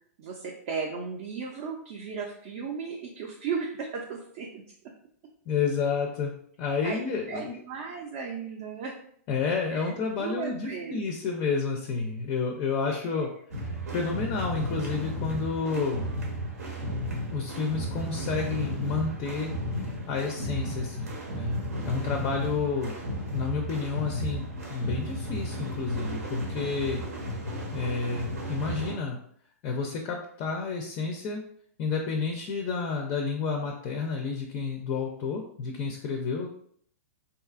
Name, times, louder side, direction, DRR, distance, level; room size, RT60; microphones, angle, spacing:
voice 1, 0.2-4.6 6.8-7.0 7.3-9.0 9.7-11.0 12.9-13.3, right 5 dB, 50° right, 0 dB, 0.4 m, -36 dB
voice 2, 5.5-6.3 6.6-7.6 9.3-13.3 13.6-16.0 17.3-19.5 20.1-21.6 21.9-23.0 23.3-24.4 24.7-27.0 27.7-29.2 29.6-31.4 31.8-36.5, left 5 dB, 35° left, 2 dB, 0.4 m, -30 dB
sound 1, 13.5-28.9, equal, 90° right, 0.8 m, -34 dB
2.7 x 2.3 x 2.4 m, 0.63 s
hypercardioid pair, 135°, 8 cm